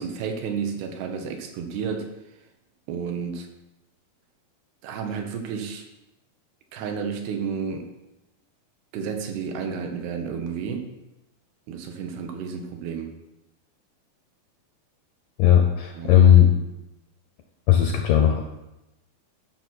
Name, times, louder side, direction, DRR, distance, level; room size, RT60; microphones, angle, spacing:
voice 1, 0.0-2.1 2.9-3.5 4.8-5.9 6.7-7.9 8.9-10.9 11.7-13.1 15.9-16.1, right 6 dB, 85° right, 4 dB, 3.1 m, -31 dB
voice 2, 15.4-16.5 17.7-18.4, left 10 dB, 80° left, 4 dB, 1.9 m, -16 dB
12.0 x 6.2 x 4.1 m, 0.95 s
omnidirectional pair, 4.5 m